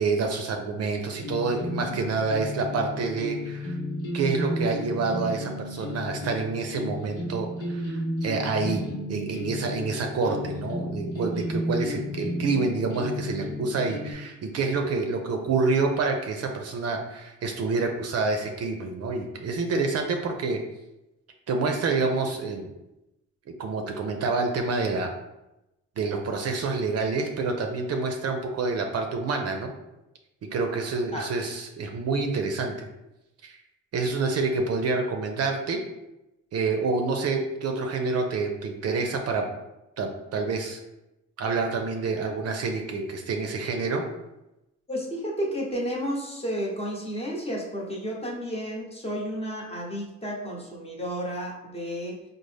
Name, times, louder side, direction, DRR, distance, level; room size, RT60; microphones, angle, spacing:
voice 1, 0.0-3.8 4.1-20.6 21.5-22.7 23.6-25.1 26.0-29.7 30.5-32.9 33.4-33.6 33.9-35.8 36.5-39.5 40.0-40.8 41.4-44.0, right 4 dB, 55° right, 3 dB, 0.5 m, -27 dB
sound 1, 1.2-14.1, left 1 dB, 90° left, 0.9 m, -33 dB
voice 2, 44.9-52.2, equal, 20° left, -2 dB, 0.9 m, -32 dB
3.9 x 2.0 x 3.2 m, 0.93 s
cardioid pair, 90°, 30 cm